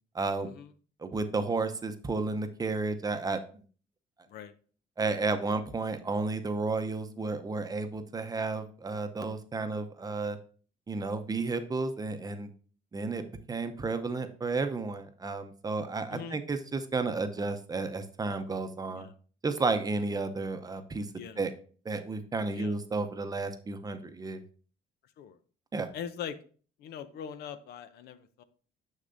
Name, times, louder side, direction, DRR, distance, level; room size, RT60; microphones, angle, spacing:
voice 1, 0.1-0.5 1.0-3.6 5.0-10.4 10.9-12.5 12.9-19.1 19.4-21.1 21.4-21.5 21.8-24.4 25.7-25.9, right 3 dB, 20° right, 8 dB, 0.7 m, -32 dB
voice 2, 22.5-22.8 25.2-25.4 25.9-26.4 26.8-28.4, left 8 dB, 75° left, 12 dB, 0.6 m, -42 dB
6.5 x 6.5 x 2.6 m, 0.41 s
cardioid pair, 110°, 17 cm